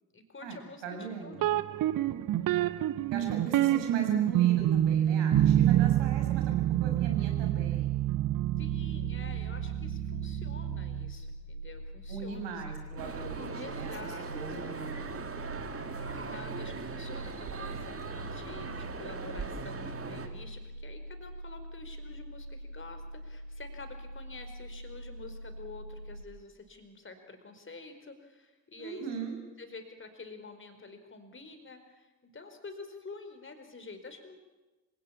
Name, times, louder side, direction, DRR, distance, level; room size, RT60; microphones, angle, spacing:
voice 1, 0.1-1.7 8.6-12.6 13.5-14.8 16.1-29.1 29.6-34.4, left 3 dB, 25° left, 7 dB, 4.6 m, -48 dB
voice 2, 0.8-1.4 3.1-6.5 6.8-7.9 12.1-15.2 28.8-29.4, right 5 dB, 60° right, 3 dB, 6.1 m, -39 dB
sound 1, 1.4-11.1, right 12 dB, 45° right, 1.0 m, -27 dB
sound 2, 8.5-26.2, right 1 dB, 85° right, 1.3 m, -43 dB
sound 3, 13.0-20.3, right 4 dB, 30° right, 2.5 m, -40 dB
26.5 x 18.0 x 8.7 m, 1.1 s
figure-of-eight pair, 50°, 48 cm